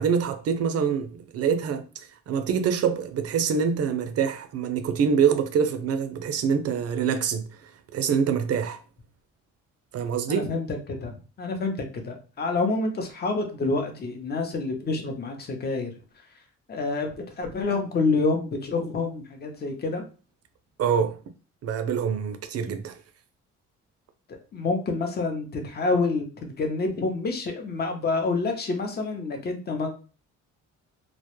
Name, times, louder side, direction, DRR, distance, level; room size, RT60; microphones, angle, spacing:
voice 1, 0.0-1.8 2.3-8.8 9.9-10.5 20.8-21.2 21.6-23.0, right 7 dB, 55° right, 0.4 m, -25 dB
voice 2, 10.3-11.1 11.4-15.9 16.7-20.0 24.3-29.9, left 3 dB, 35° left, 0.6 m, -28 dB
2.1 x 2.0 x 2.9 m
cardioid pair, 90°, 30 cm